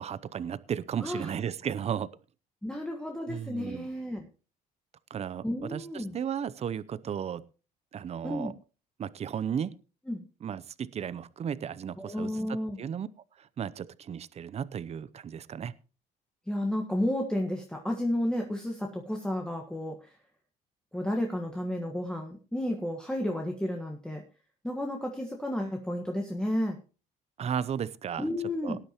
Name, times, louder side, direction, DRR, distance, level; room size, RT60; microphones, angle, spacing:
voice 1, 0.0-2.1 3.3-3.9 5.1-7.4 7.9-8.5 9.0-9.7 10.4-13.1 13.4-15.7 27.4-28.3 28.6-28.8, right 8 dB, 40° right, 17 dB, 0.7 m, -34 dB
voice 2, 2.6-4.3 5.4-6.1 8.2-8.5 10.1-10.2 12.0-12.8 16.5-20.1 20.9-24.2 24.6-26.8 28.2-28.8, left 1 dB, 5° left, 1 dB, 1.5 m, -32 dB
18.5 x 10.0 x 3.0 m, 0.34 s
cardioid pair, 110°, 17 cm